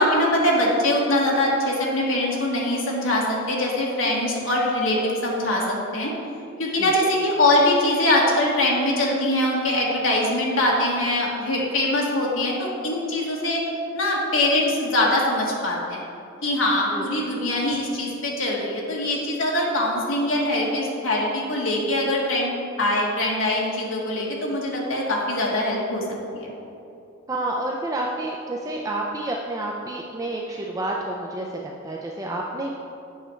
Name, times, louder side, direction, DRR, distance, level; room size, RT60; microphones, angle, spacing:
voice 1, 0.0-5.6 5.9-6.1 6.6-13.6 13.9-16.1 16.4-22.5 22.8-26.0 26.3-26.5, left 1 dB, 65° left, -3 dB, 1.5 m, -22 dB
voice 2, 27.3-32.7, right 2 dB, 15° right, -1 dB, 0.4 m, -29 dB
8.3 x 5.7 x 4.4 m, 2.7 s
head